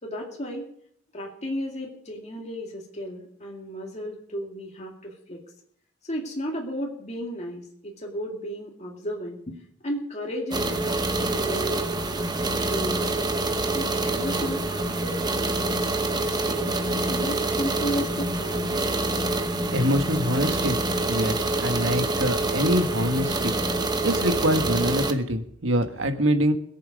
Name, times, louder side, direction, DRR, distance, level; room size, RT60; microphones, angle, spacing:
voice 1, 0.0-0.7 1.1-5.4 6.0-9.6 9.8-13.2 13.7-15.1 15.5-16.7 17.1-18.7, equal, 35° left, -1 dB, 2.3 m, -34 dB
sound 1, 10.5-25.1, right 2 dB, 20° right, 1.0 m, -26 dB
voice 2, 19.7-20.8 21.1-23.5 24.0-26.5, equal, 85° right, 7 dB, 1.5 m, -24 dB
21.5 x 7.6 x 5.2 m, 0.67 s
head